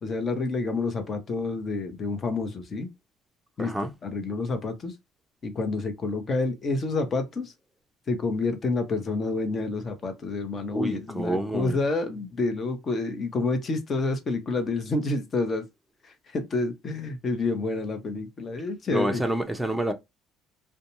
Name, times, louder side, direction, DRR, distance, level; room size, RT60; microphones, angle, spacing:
voice 1, 0.0-2.9 3.6-3.7 4.0-4.9 5.4-7.5 8.1-15.6 16.0-19.2, left 3 dB, 40° left, 0.9 m, -28 dB
voice 2, 3.6-3.9 10.7-11.7 18.9-19.9, right 1 dB, ahead, 0.6 m, -28 dB
2.5 x 2.2 x 3.0 m
hypercardioid pair, 70°, 0 cm